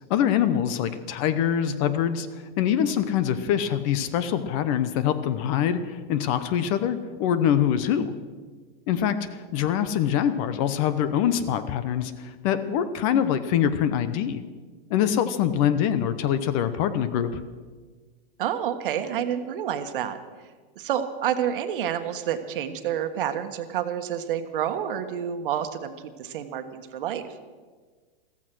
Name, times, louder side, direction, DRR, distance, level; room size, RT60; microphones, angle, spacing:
voice 1, 0.1-8.1 8.9-14.4 14.9-17.4, left 9 dB, 35° left, 12 dB, 0.9 m, -24 dB
voice 2, 18.4-20.2 20.7-25.9 26.2-27.2, right 9 dB, 60° right, 8 dB, 1.5 m, -29 dB
15.0 x 14.5 x 6.2 m, 1.5 s
hypercardioid pair, 155°, 30 cm